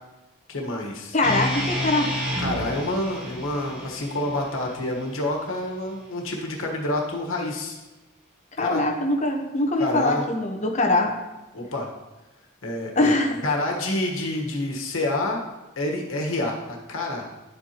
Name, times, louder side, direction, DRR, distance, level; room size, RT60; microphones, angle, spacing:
voice 1, 0.5-1.2 2.4-7.8 8.6-8.8 9.8-10.2 11.5-11.9 12.6-13.1 13.4-15.4 15.8-17.2, left 1 dB, 90° left, 0 dB, 1.4 m, -28 dB
voice 2, 1.1-2.1 8.6-11.1 13.0-13.4, left 2 dB, 35° left, 1 dB, 1.0 m, -22 dB
sound 1, 1.2-5.4, equal, 5° right, 2.1 m, -31 dB
10.5 x 8.0 x 3.0 m, 1.1 s
head